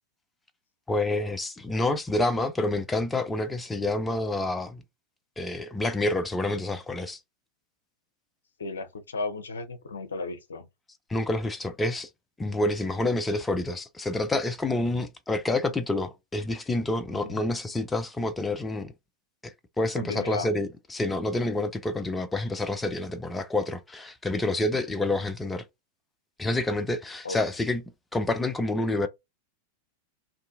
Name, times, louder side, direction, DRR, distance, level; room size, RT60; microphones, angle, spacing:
voice 1, 0.9-4.8 5.4-7.2 11.1-12.1 12.4-18.9 19.4-25.6 26.4-27.8 28.1-29.1, left 2 dB, 10° left, 0.4 m, -28 dB
voice 2, 8.6-10.7 17.2-17.4 20.0-20.5 27.2-27.4, left 3 dB, 70° left, 0.6 m, -34 dB
2.6 x 2.3 x 2.5 m
figure-of-eight pair, 90°, 0 cm